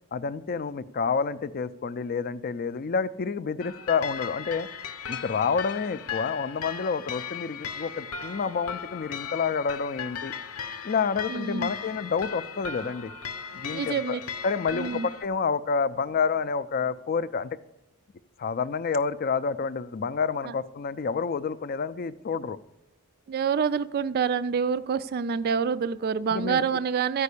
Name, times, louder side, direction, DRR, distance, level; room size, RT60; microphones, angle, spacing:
voice 1, 0.1-4.7 5.1-10.3 10.8-13.1 13.5-17.6 18.4-22.6 26.3-26.6, left 5 dB, 40° left, 14 dB, 0.4 m, -29 dB
sound 1, 3.6-15.2, left 7 dB, 80° left, 0.7 m, -37 dB
voice 2, 11.3-11.7 13.7-14.2 14.7-15.1 23.3-27.2, right 6 dB, 45° right, 12 dB, 0.3 m, -27 dB
13.5 x 5.3 x 8.3 m, 0.91 s
head